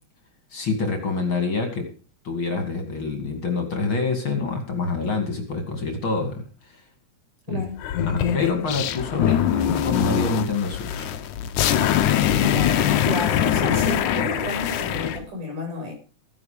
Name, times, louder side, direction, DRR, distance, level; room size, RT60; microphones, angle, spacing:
voice 1, 0.5-1.9 2.2-6.4 7.5-7.6 8.0-11.1, left 3 dB, 40° left, 5 dB, 3.1 m, -26 dB
voice 2, 7.5-7.8 12.4-15.9, left 1 dB, 85° right, 2 dB, 7.9 m, -31 dB
sound 1, 7.8-15.2, left 10 dB, 75° left, 2.4 m, -23 dB
16.0 x 11.0 x 5.1 m, 0.36 s
omnidirectional pair, 3.6 m